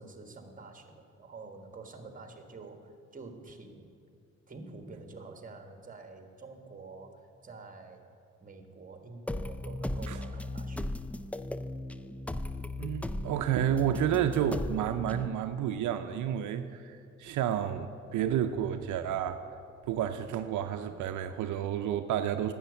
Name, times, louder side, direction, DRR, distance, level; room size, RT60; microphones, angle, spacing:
voice 1, 0.0-3.9 4.5-8.1 8.4-10.9, right 3 dB, 25° right, 6 dB, 1.5 m, -48 dB
sound 1, 9.3-15.3, left 1 dB, 5° left, 0.3 m, -37 dB
voice 2, 12.8-19.4 19.8-22.5, right 10 dB, 80° right, 8 dB, 0.6 m, -30 dB
10.0 x 7.2 x 8.3 m, 2.4 s
cardioid pair, 90°, 30 cm